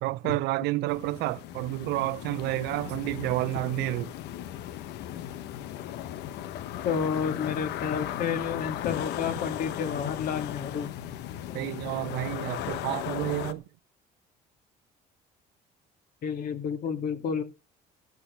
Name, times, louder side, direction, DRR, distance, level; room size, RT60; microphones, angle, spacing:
voice 1, 0.0-4.1 11.5-13.6, right 19 dB, 90° right, 0.6 m, -30 dB
sound 1, 0.9-13.5, left 12 dB, 85° left, 1.1 m, -36 dB
voice 2, 6.8-10.9 16.2-17.4, left 7 dB, 60° left, 2.1 m, -30 dB
13.0 x 6.3 x 6.9 m
cardioid pair, 110°, 17 cm